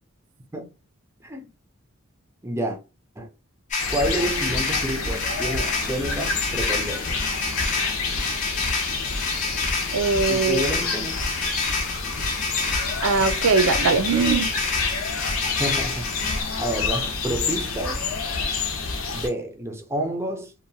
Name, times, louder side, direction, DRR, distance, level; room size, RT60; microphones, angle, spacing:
voice 1, 2.4-2.8 3.2-3.3 3.9-7.4 10.3-11.2 15.6-18.0 19.1-20.5, right 1 dB, 15° right, 0.4 m, -29 dB
sound 1, 3.7-16.4, left 3 dB, 35° left, 0.5 m, -29 dB
sound 2, 3.8-19.3, left 4 dB, 85° left, 0.7 m, -28 dB
voice 2, 9.9-10.6 13.0-14.5, right 4 dB, 75° right, 0.4 m, -21 dB
2.7 x 2.2 x 2.6 m
head